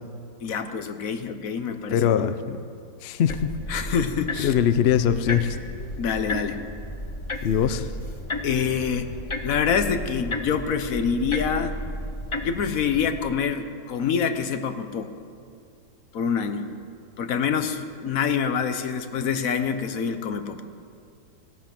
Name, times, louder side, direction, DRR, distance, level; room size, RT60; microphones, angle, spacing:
voice 1, 0.4-2.1 3.7-4.6 6.0-6.6 8.4-9.1 9.4-11.7 12.4-15.1 16.1-16.7 17.2-20.6, left 6 dB, 60° left, 9 dB, 1.2 m, -26 dB
voice 2, 1.9-2.6 3.0-3.5 4.4-5.6 7.4-7.9, left 9 dB, 75° left, 12 dB, 0.5 m, -22 dB
sound 1, 3.3-13.2, left 1 dB, 25° left, 0.6 m, -34 dB
16.0 x 13.5 x 6.0 m, 2.3 s
omnidirectional pair, 1.8 m